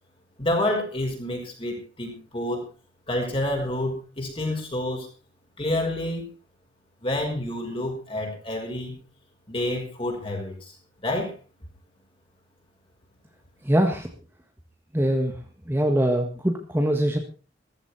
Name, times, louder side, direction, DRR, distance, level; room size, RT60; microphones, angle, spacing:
voice 1, 0.4-2.6 3.1-5.1 5.6-6.2 7.0-9.0 9.5-10.7 11.0-11.3, left 1 dB, 30° left, 2 dB, 5.3 m, -28 dB
voice 2, 13.6-14.1 14.9-15.3 15.7-17.2, right 1 dB, 10° right, 3 dB, 1.7 m, -22 dB
15.5 x 15.0 x 4.4 m, 0.35 s
head